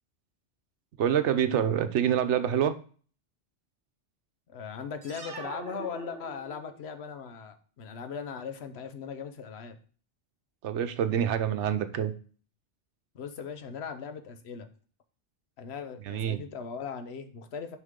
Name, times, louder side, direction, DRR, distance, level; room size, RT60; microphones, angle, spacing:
voice 1, 1.0-2.7 10.6-12.1 16.0-16.4, right 9 dB, 85° right, 10 dB, 1.0 m, -26 dB
voice 2, 4.5-9.8 13.1-14.7 15.6-17.8, left 6 dB, 70° left, 9 dB, 1.0 m, -39 dB
sound 1, 5.0-6.9, right 4 dB, 55° right, 1.2 m, -43 dB
6.4 x 5.3 x 3.6 m, 0.42 s
omnidirectional pair, 1.2 m